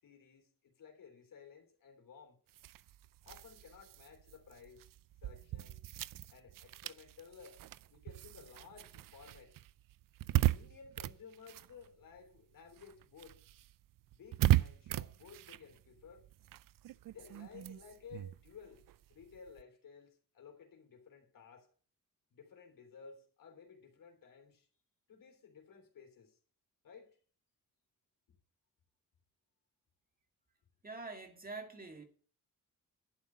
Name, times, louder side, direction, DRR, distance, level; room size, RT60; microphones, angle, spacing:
voice 1, 0.0-2.4 3.2-4.9 5.2-5.8 6.3-7.6 7.9-9.5 10.3-13.4 14.1-16.3 17.1-18.8 19.1-21.7 22.3-24.7 25.1-26.4 26.8-27.2 28.3-28.4, left 6 dB, 70° left, 3.5 m, -56 dB
sound 1, 2.5-12.4 12.7-19.6, right 15 dB, 75° right, 0.5 m, -38 dB
voice 2, 30.8-32.0, right 3 dB, 25° right, 2.1 m, -45 dB
11.5 x 5.6 x 8.5 m
wide cardioid pair, 115°, 34 cm